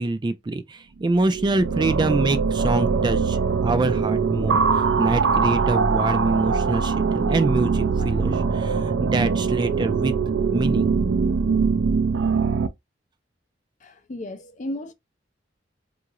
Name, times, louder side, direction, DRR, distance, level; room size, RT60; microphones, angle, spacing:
voice 1, 0.0-10.2 10.5-10.9, right 2 dB, 25° right, 0.3 m, -25 dB
sound 1, 1.1-12.7, right 5 dB, 90° right, 0.4 m, -22 dB
voice 2, 13.8-14.9, left 1 dB, 40° left, 0.5 m, -34 dB
3.7 x 2.4 x 2.9 m
head